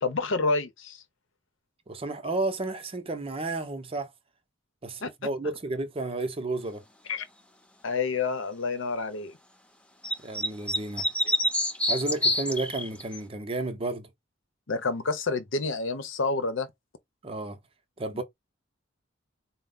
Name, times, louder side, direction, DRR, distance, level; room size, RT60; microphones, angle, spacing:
voice 1, 0.0-1.0 5.0-5.1 7.1-7.3 7.8-9.4 11.2-11.3 14.7-16.7 18.1-18.2, left 3 dB, 75° left, 0.8 m, -29 dB
voice 2, 1.9-4.1 4.8-6.8 10.2-11.1 11.9-14.1 17.2-17.6 18.0-18.2, right 2 dB, 30° right, 0.6 m, -32 dB
sound 1, 10.0-13.2, left 1 dB, 5° left, 0.7 m, -26 dB
4.4 x 2.1 x 3.8 m
head